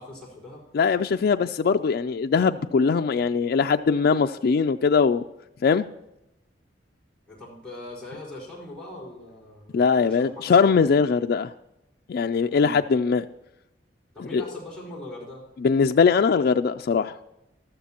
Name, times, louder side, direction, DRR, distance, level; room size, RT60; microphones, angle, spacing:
voice 1, 0.0-0.6 7.3-10.5 12.5-12.8 14.1-15.4, left 1 dB, 5° left, -6 dB, 4.8 m, -41 dB
voice 2, 0.7-5.2 5.6-5.9 9.7-11.5 12.1-13.3 14.3-14.4 15.6-17.2, left 5 dB, 60° left, 6 dB, 0.3 m, -21 dB
14.5 x 13.0 x 2.9 m, 0.89 s
head